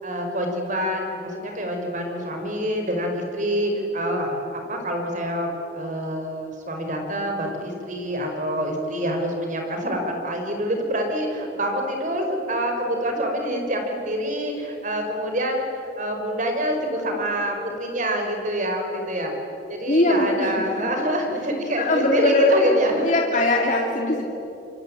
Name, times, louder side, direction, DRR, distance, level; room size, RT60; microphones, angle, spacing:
voice 1, 0.0-15.7 16.0-19.3 19.7-23.1, equal, 45° right, 3 dB, 5.0 m, -26 dB
voice 2, 19.9-20.9 21.8-22.5 23.0-24.3, left 2 dB, 45° left, 0 dB, 2.5 m, -21 dB
27.0 x 24.0 x 8.8 m, 2.8 s
head